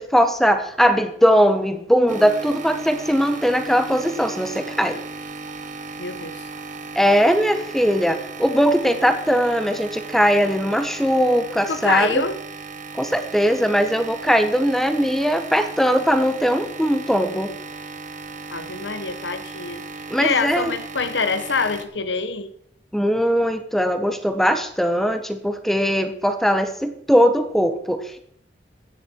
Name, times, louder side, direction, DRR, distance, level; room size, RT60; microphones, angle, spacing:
voice 1, 0.0-5.0 6.9-12.2 12.9-17.5 20.1-20.7 22.9-28.2, equal, ahead, 1.2 m, -20 dB
sound 1, 2.1-21.9, right 3 dB, 45° right, 1.3 m, -36 dB
voice 2, 6.0-6.4 11.7-12.4 18.5-19.8 20.2-22.5, left 4 dB, 90° left, 1.2 m, -25 dB
16.0 x 9.5 x 4.6 m
head